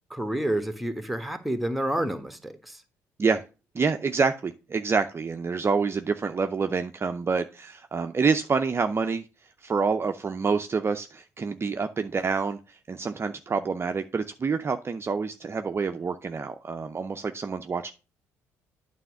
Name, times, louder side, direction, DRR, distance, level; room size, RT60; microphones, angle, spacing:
voice 1, 0.1-2.8, right 1 dB, ahead, 1.4 m, -29 dB
voice 2, 3.7-9.2 9.6-17.9, right 5 dB, 35° right, 0.6 m, -27 dB
9.0 x 3.5 x 6.3 m
hypercardioid pair, 50°, 8 cm